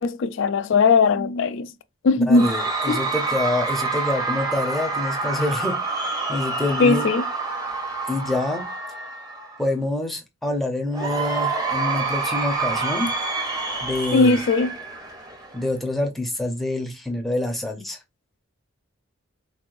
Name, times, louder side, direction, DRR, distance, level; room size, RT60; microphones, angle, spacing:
voice 1, 0.0-1.7 2.0-2.5 2.9-3.0 6.8-7.2 14.1-14.7, left 4 dB, 65° left, 0.4 m, -19 dB
voice 2, 2.2-5.8 6.0-7.1 8.1-8.7 9.6-13.1 13.8-14.4 15.5-18.0, left 2 dB, ahead, 0.7 m, -26 dB
Cheering / Crowd, 2.3-9.7 10.9-15.7, right 3 dB, 20° right, 1.0 m, -27 dB
4.2 x 3.1 x 2.5 m
head